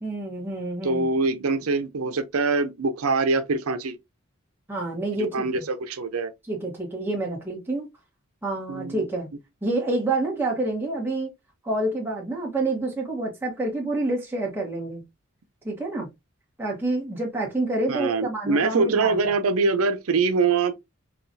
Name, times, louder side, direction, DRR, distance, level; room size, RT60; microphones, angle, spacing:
voice 1, 0.0-1.1 4.7-5.5 6.5-7.9 8.4-9.3 9.6-11.3 11.6-15.0 15.6-16.1 16.6-19.3, right 2 dB, 10° right, 1.2 m, -28 dB
voice 2, 0.8-4.0 5.2-6.3 8.7-9.0 17.9-20.7, right 4 dB, 90° right, 0.6 m, -24 dB
5.7 x 2.4 x 2.6 m
head